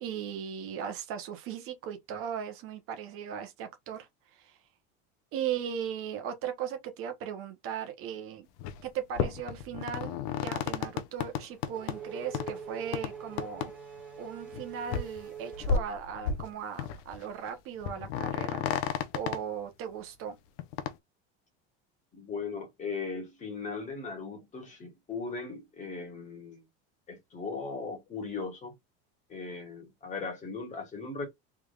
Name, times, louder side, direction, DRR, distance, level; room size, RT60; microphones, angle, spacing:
voice 1, 0.0-4.6 5.3-8.5 8.8-13.7 14.2-20.4, right 8 dB, 45° right, 0.9 m, -38 dB
sound 1, 8.6-8.8 9.1-12.0 12.3-12.5 12.9-13.1 13.4-13.7 14.0-14.1 14.5-14.6 14.9-15.2 15.5-16.5 16.8-17.2 17.5-17.6 17.8-19.4 20.6-20.9, left 7 dB, 65° left, 0.6 m, -32 dB
Race car auto racing / Accelerating revving vroom, 11.2-16.4, right 6 dB, 5° right, 1.7 m, -44 dB
voice 2, 22.1-26.6 27.1-28.7 29.3-31.3, left 4 dB, 25° left, 1.7 m, -38 dB
3.4 x 3.3 x 2.4 m
cardioid pair, 145°, 30 cm